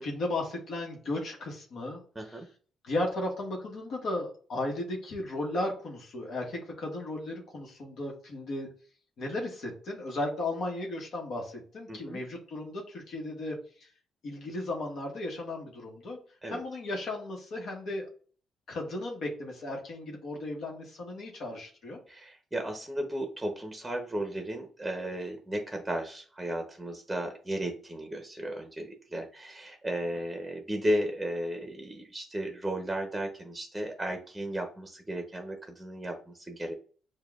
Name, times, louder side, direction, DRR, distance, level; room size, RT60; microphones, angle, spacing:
voice 1, 0.0-2.4 2.8-8.7 9.2-13.9 14.2-16.2 16.5-18.1 18.7-22.0, left 2 dB, 65° left, 0 dB, 1.1 m, -35 dB
voice 2, 2.2-2.5 11.9-12.2 16.4-16.6 22.1-36.7, right 1 dB, 10° right, 3 dB, 0.7 m, -34 dB
6.5 x 2.2 x 2.4 m, 0.42 s
cardioid pair, 90°, 0 cm